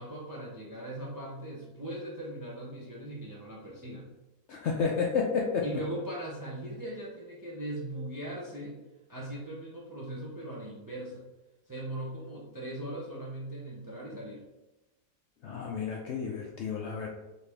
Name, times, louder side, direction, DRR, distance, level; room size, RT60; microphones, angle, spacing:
voice 1, 0.0-4.1 5.6-8.8 9.1-11.3 11.7-14.4, right 1 dB, 30° right, -4 dB, 0.3 m, -39 dB
voice 2, 4.5-5.7 15.4-17.1, left 5 dB, 70° left, -1 dB, 0.6 m, -31 dB
4.1 x 3.1 x 3.3 m, 1.0 s
omnidirectional pair, 1.6 m